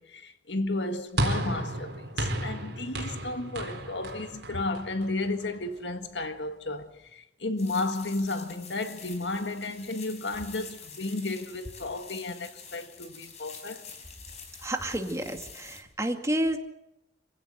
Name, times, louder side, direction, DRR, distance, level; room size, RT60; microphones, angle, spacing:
voice 1, 0.0-13.9, left 2 dB, 80° left, 1.8 m, -33 dB
sound 1, 1.2-5.6, right 1 dB, 75° right, 4.5 m, -33 dB
sound 2, 7.6-15.8, left 6 dB, 40° left, 4.1 m, -47 dB
voice 2, 14.6-16.6, right 1 dB, 15° right, 2.2 m, -30 dB
26.5 x 16.5 x 8.2 m
head